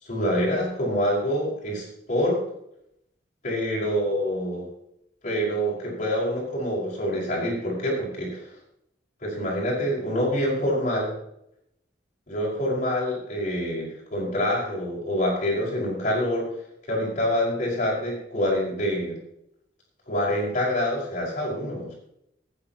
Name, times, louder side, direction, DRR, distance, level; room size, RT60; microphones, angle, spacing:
voice 1, 0.0-2.4 3.4-4.7 5.2-8.5 9.2-11.1 12.3-16.5 16.9-19.2 20.1-21.9, equal, 45° left, -4 dB, 5.6 m, -26 dB
19.0 x 9.9 x 3.1 m, 0.77 s
head